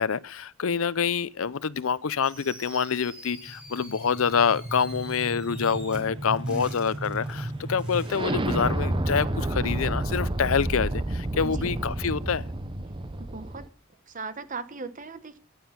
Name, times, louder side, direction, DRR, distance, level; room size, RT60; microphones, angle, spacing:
voice 1, 0.0-12.5, left 6 dB, 80° left, 0.6 m, -26 dB
Fireworks, 2.2-8.3, equal, 5° right, 4.5 m, -47 dB
sound 1, 3.5-13.7, right 1 dB, 25° right, 0.8 m, -31 dB
voice 2, 11.4-11.7 13.2-13.7 14.1-15.4, right 4 dB, 40° right, 1.1 m, -38 dB
15.0 x 9.5 x 5.7 m
head